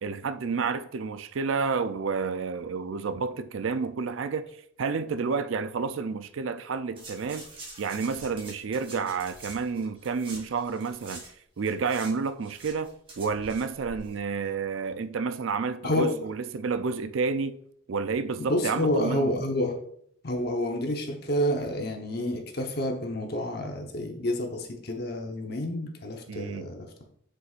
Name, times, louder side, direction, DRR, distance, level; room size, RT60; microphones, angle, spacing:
voice 1, 0.0-4.5 4.8-7.5 7.8-11.2 11.6-17.6 17.9-19.3 26.3-26.7, right 5 dB, 70° right, 0.4 m, -30 dB
sound 1, 7.0-11.3 11.6-14.1 14.4-14.5, right 2 dB, 25° right, 2.8 m, -46 dB
voice 2, 18.4-19.7 20.2-26.9, left 1 dB, 50° left, 1.0 m, -29 dB
8.0 x 6.3 x 2.5 m
head